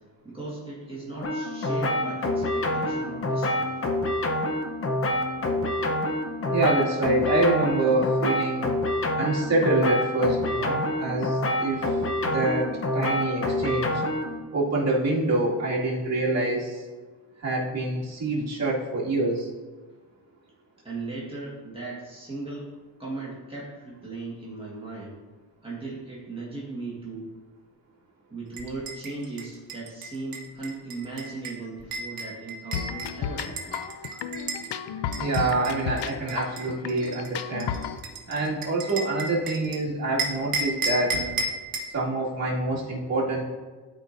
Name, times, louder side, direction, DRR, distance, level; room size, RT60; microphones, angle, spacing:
voice 1, 0.2-3.7 20.8-22.7 23.0-25.2 25.6-27.3 28.3-33.8, right 3 dB, 15° right, -6 dB, 1.7 m, -37 dB
sound 1, 1.2-14.4, left 1 dB, 35° left, 0.9 m, -27 dB
voice 2, 6.5-8.7 9.2-11.9 12.2-14.0 14.5-16.9 17.4-19.5 35.2-37.8 38.3-41.3 41.8-43.4, right 2 dB, 40° right, -5 dB, 2.3 m, -26 dB
sound 2, 28.5-34.7 35.1-39.8 40.2-41.9, right 3 dB, 55° right, 1.2 m, -33 dB
sound 3, 32.7-38.0, left 8 dB, 80° left, 0.6 m, -33 dB
12.0 x 4.8 x 2.6 m, 1.4 s
cardioid pair, 115°, 40 cm